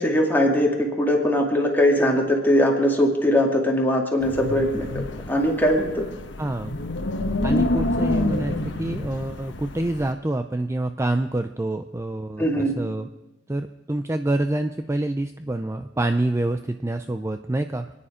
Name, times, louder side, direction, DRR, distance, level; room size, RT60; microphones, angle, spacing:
voice 1, 0.0-4.9 5.3-6.1 7.5-7.6 12.4-12.7, equal, 10° left, 0 dB, 2.4 m, -21 dB
Wind, 4.2-10.1, left 2 dB, 80° left, 1.2 m, -28 dB
voice 2, 6.4-6.8 7.4-13.1 13.5-17.9, right 1 dB, 15° right, 8 dB, 0.5 m, -27 dB
27.5 x 10.0 x 5.1 m, 1.0 s
head